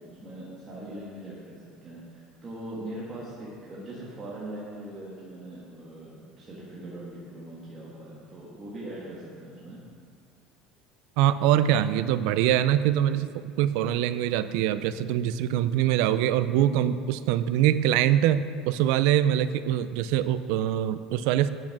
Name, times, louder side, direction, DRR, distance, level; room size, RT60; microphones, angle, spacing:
voice 1, 0.0-9.8 14.5-14.6, right 1 dB, 20° right, -7 dB, 1.4 m, -41 dB
voice 2, 11.2-13.3 13.6-21.5, right 11 dB, 65° right, 13 dB, 0.4 m, -23 dB
8.6 x 6.4 x 5.8 m, 2.3 s
cardioid pair, 165°, 0 cm